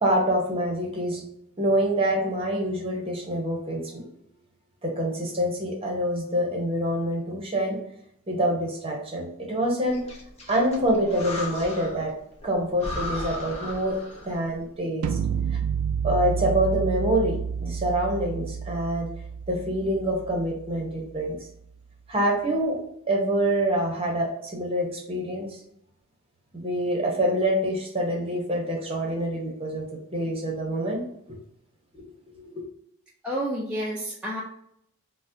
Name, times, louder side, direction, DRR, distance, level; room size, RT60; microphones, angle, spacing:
voice 1, 0.0-1.2 1.6-4.0 4.8-7.8 8.3-10.0 10.5-12.1 12.4-15.2 15.5-15.6 16.0-19.1 19.5-21.4 22.1-22.8 23.1-25.6 26.5-31.4 32.4-32.5, right 1 dB, 25° right, 0 dB, 0.8 m, -26 dB
Breathing, 9.9-12.1 12.4-12.5 12.8-14.5, left 1 dB, 30° left, 0.7 m, -36 dB
sound 1, 15.0-21.0, right 7 dB, 85° right, 0.3 m, -30 dB
voice 2, 33.2-34.4, equal, 5° right, -6 dB, 0.4 m, -29 dB
3.9 x 2.1 x 2.6 m, 0.74 s
head